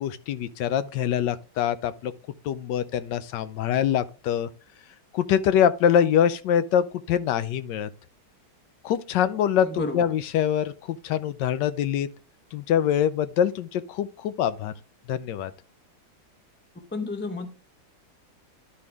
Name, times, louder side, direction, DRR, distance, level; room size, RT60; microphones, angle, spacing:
voice 1, 0.0-2.1 2.4-4.5 5.1-7.9 8.8-12.1 12.5-14.7 15.1-15.5, left 9 dB, 75° left, 1.2 m, -24 dB
voice 2, 9.6-10.0 16.9-17.5, left 3 dB, 15° left, 0.4 m, -31 dB
11.5 x 4.6 x 3.4 m
omnidirectional pair, 2.0 m